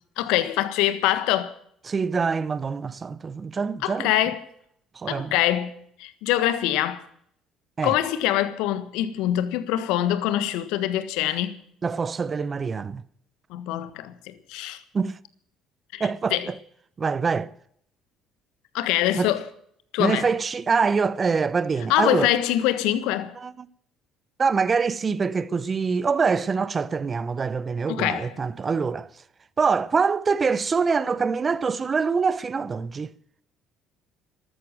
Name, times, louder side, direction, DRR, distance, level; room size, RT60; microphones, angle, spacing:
voice 1, 0.2-1.5 3.8-4.4 5.1-7.0 7.8-11.5 13.5-14.8 15.9-16.5 18.7-19.4 19.9-20.3 21.9-23.3 27.9-28.3, left 13 dB, 70° left, 1.5 m, -24 dB
voice 2, 1.9-4.1 4.9-5.3 7.8-8.0 11.8-13.0 14.9-15.2 16.0-16.6 17.0-17.5 19.2-19.3 20.0-22.3 23.4-23.7 24.4-29.1 29.6-33.1, right 5 dB, 35° right, 0.9 m, -25 dB
14.0 x 13.0 x 7.6 m
hypercardioid pair, 55°, 0 cm